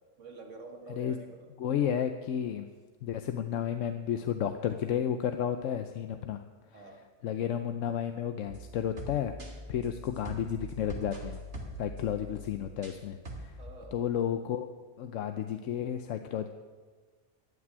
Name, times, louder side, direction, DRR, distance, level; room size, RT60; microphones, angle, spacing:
voice 1, 0.2-1.5 6.7-7.1 13.6-14.1, right 3 dB, 75° right, 3 dB, 2.0 m, -47 dB
voice 2, 1.6-2.7 3.0-6.4 6.7-6.8 7.2-9.3 9.7-11.4 11.8-13.6 13.9-14.7 15.0-16.5, left 9 dB, 85° left, 8 dB, 1.0 m, -32 dB
sound 1, 8.5-13.0 13.3-13.7, right 1 dB, 55° right, 2.1 m, -43 dB
15.0 x 6.1 x 9.6 m, 1.4 s
omnidirectional pair, 1.3 m